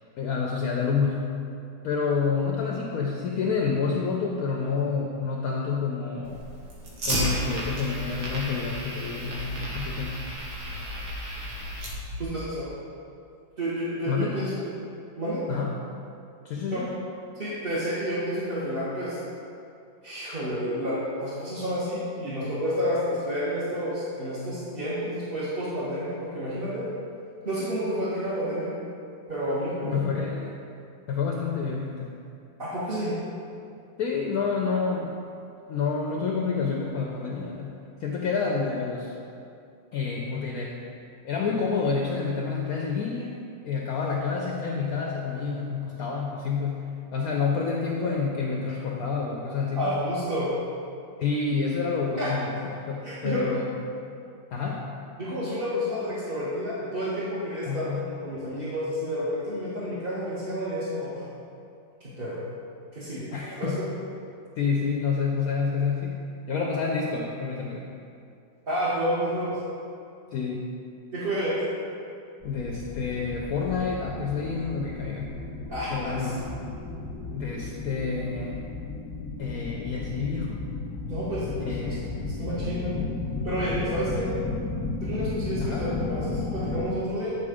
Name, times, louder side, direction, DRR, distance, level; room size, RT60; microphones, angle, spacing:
voice 1, 0.2-1.3 1.8-6.4 7.0-10.2 14.1-14.4 15.5-15.8 16.4-16.9 29.8-30.5 31.1-32.1 34.0-35.2 35.7-37.7 38.0-39.1 39.9-40.8 41.2-49.9 51.2-52.6 52.9-53.8 54.5-54.9 57.7-58.0 63.3-63.8 64.6-66.2 66.5-67.8 70.3-70.6 72.4-75.3 75.9-76.4 77.3-78.6 79.4-80.7 81.6-82.0 85.6-85.9, left 5 dB, 70° left, 0 dB, 0.9 m, -28 dB
Fire, 6.2-12.2, equal, 60° right, 1.7 m, -33 dB
voice 2, 12.2-12.7 13.6-14.6 15.2-15.4 16.7-16.8 17.3-19.2 20.0-26.8 27.4-28.7 29.3-30.2 32.6-33.2 49.8-50.5 52.2-52.3 53.0-53.4 55.2-61.3 62.0-62.4 62.9-63.3 63.6-63.9 68.7-69.6 71.1-71.6 75.7-76.3 81.1-82.0 82.2-83.0 83.4-84.3 85.0-87.4, equal, 35° right, -9 dB, 1.2 m, -30 dB
sound 1, 72.4-86.9, left 3 dB, 30° left, 0.5 m, -34 dB
8.7 x 4.1 x 5.0 m, 2.5 s
omnidirectional pair, 2.0 m